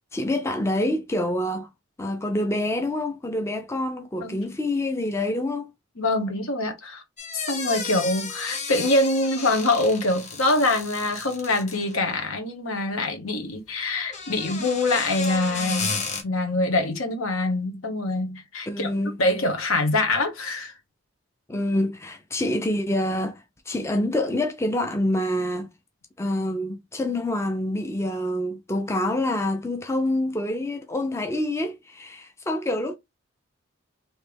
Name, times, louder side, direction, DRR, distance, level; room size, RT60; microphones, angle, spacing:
voice 1, 0.1-1.7 2.0-5.7 18.7-19.2 21.5-25.7 26.2-33.0, left 1 dB, 15° left, 0.4 m, -26 dB
voice 2, 6.0-7.0 7.3-15.9 16.2-18.9 19.2-20.7, left 2 dB, 80° left, 1.1 m, -24 dB
sound 1, 7.2-12.0 14.0-16.2, left 4 dB, 35° left, 0.8 m, -33 dB
3.2 x 2.9 x 3.3 m
head